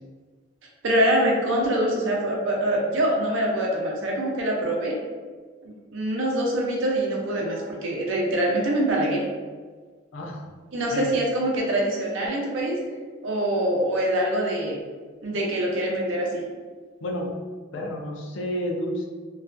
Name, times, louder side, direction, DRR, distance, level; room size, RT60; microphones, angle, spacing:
voice 1, 0.8-5.0 5.6-9.3 10.7-12.8 13.2-14.8 15.2-16.4, right 1 dB, 85° right, -1 dB, 0.6 m, -24 dB
voice 2, 17.0-17.3 17.7-19.1, equal, 80° left, 1 dB, 0.4 m, -30 dB
2.3 x 2.2 x 2.4 m, 1.5 s
head